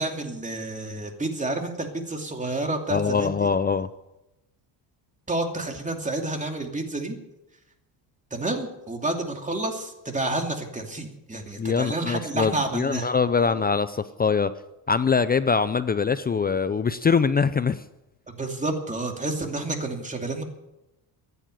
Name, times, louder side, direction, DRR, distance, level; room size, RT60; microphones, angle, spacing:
voice 1, 0.0-3.5 5.3-7.2 8.3-13.1 18.3-20.4, right 2 dB, 15° right, 3 dB, 2.8 m, -29 dB
voice 2, 2.9-3.9 11.6-14.5 14.9-17.8, left 5 dB, 20° left, 13 dB, 0.5 m, -23 dB
15.0 x 10.0 x 9.2 m, 0.93 s
cardioid pair, 115°, 44 cm